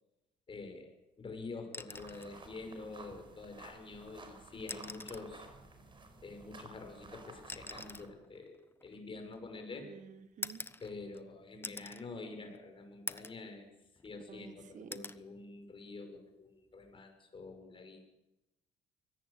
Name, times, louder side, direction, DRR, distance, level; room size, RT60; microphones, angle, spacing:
voice 1, 0.5-0.9 1.2-5.5 6.2-9.9 10.8-13.7 14.0-18.2, left 3 dB, 30° left, 5 dB, 6.4 m, -47 dB
sound 1, 1.6-2.4 3.8-3.9 4.6-5.4 6.5-9.6 10.4-11.3 11.6-12.0 12.5-12.6 13.1-13.5 13.9-14.5 14.9-15.2 16.7-16.9, left 3 dB, 15° left, 1.0 m, -45 dB
sound 2, 1.9-8.1, right 3 dB, 30° right, 5.0 m, -53 dB
voice 2, 9.8-10.6 14.3-15.0, right 7 dB, 45° right, 11 dB, 1.5 m, -51 dB
24.0 x 18.0 x 8.4 m, 0.95 s
cardioid pair, 110°, 17 cm